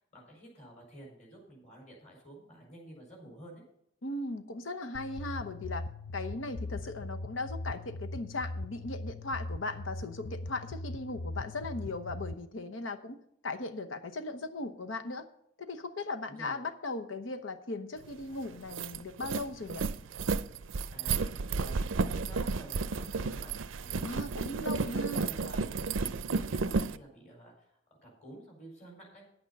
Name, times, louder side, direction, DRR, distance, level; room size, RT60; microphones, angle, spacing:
voice 1, 0.0-3.6 16.3-16.6 20.9-29.2, right 1 dB, 40° left, -1 dB, 4.7 m, -51 dB
voice 2, 4.0-5.9 6.1-13.2 13.4-15.3 15.6-19.8 24.0-25.3, left 2 dB, 85° left, 7 dB, 1.0 m, -38 dB
sound 1, 4.9-12.3, left 2 dB, 55° left, 0.5 m, -40 dB
sound 2, 18.1-18.2 18.5-27.0, right 4 dB, 90° right, 0.6 m, -32 dB
10.0 x 8.9 x 5.4 m, 0.72 s
head